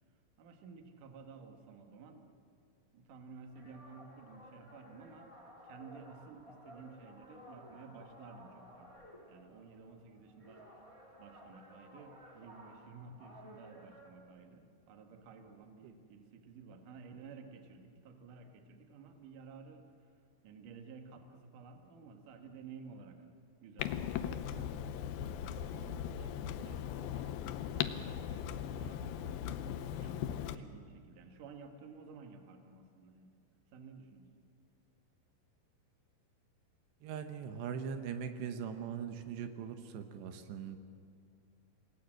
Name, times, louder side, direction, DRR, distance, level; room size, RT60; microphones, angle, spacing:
voice 1, 0.4-2.3 2.9-5.3 5.6-8.9 9.3-10.7 11.2-20.1 20.4-23.3 23.6-24.8 25.2-29.6 30.0-33.4 33.7-34.3, right 5 dB, 60° right, 5 dB, 2.8 m, -53 dB
sound 1, 3.5-14.1, equal, 20° right, 0.8 m, -56 dB
Clock, 23.8-30.6, left 10 dB, 75° left, 2.3 m, -39 dB
voice 2, 37.0-40.8, right 7 dB, 85° right, 7 dB, 3.3 m, -41 dB
28.0 x 19.0 x 7.6 m, 2.4 s
omnidirectional pair, 4.9 m